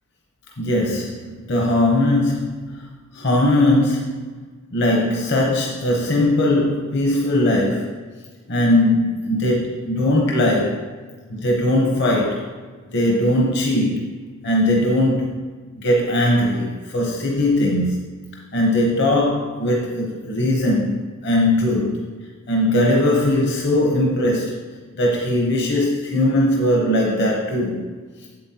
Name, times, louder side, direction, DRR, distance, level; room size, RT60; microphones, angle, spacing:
voice 1, 0.6-2.9 3.1-4.4 4.7-8.0 8.5-10.9 11.3-12.5 12.9-14.1 14.4-15.3 15.8-18.1 18.5-22.0 22.5-24.6 25.0-27.8 28.2-28.3, left 1 dB, 55° left, -1 dB, 0.9 m, -19 dB
7.8 x 7.7 x 2.8 m, 1.4 s
head